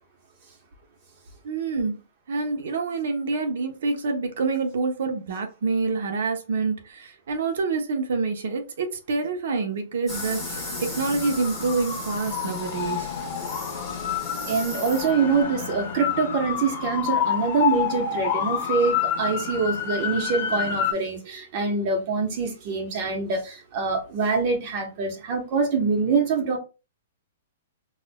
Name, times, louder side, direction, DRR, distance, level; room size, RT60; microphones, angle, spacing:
voice 1, 1.4-2.0 2.3-13.1, right 4 dB, 70° right, 0.7 m, -27 dB
sound 1, 10.1-20.9, left 8 dB, 45° left, 1.1 m, -28 dB
sound 2, 10.1-15.4, equal, 5° right, 1.5 m, -38 dB
voice 2, 14.4-26.6, right 5 dB, 40° right, 0.9 m, -25 dB
4.2 x 2.4 x 2.2 m
hypercardioid pair, 155°, 0 cm